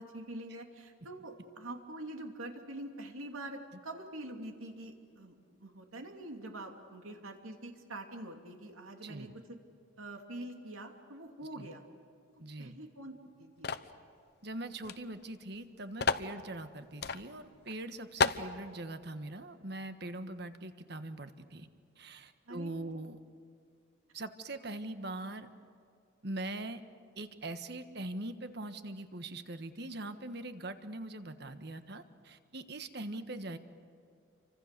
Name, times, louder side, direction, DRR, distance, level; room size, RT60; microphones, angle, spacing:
voice 1, 0.0-5.3 5.6-9.3 10.0-11.8 12.6-13.7 22.5-22.7, right 1 dB, 85° right, 4 dB, 2.8 m, -45 dB
voice 2, 9.0-9.3 11.6-11.7 12.4-12.8 14.4-21.7 22.0-23.2 24.1-25.5 26.2-26.8 27.2-33.6, right 2 dB, 55° right, 9 dB, 1.4 m, -42 dB
sound 1, 13.6-13.9 14.8-15.0 15.2-15.3 16.0-16.3 17.0-17.2 17.7-17.8 18.2-18.5, left 4 dB, 50° left, 0.8 m, -30 dB
29.0 x 25.0 x 6.8 m, 2.5 s
head